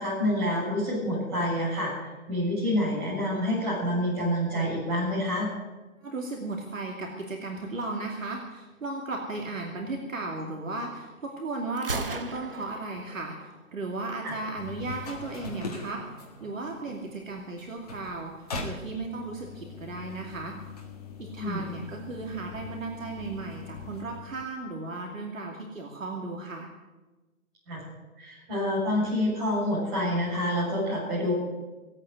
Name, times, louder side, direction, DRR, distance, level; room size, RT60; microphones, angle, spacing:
voice 1, 0.0-5.5 14.2-14.4 21.4-21.6 27.7-27.8 28.2-31.4, left 1 dB, 20° right, -8 dB, 7.3 m, -27 dB
voice 2, 6.0-16.0 16.4-20.6 21.2-26.7, right 3 dB, 65° right, 0 dB, 2.7 m, -35 dB
Gunshot gunfire, 11.8-13.7, right 4 dB, 40° right, 0.8 m, -37 dB
sound 1, 14.5-24.4, left 3 dB, 25° left, 1.8 m, -41 dB
18.0 x 8.9 x 8.1 m, 1.2 s
hypercardioid pair, 170°, 43 cm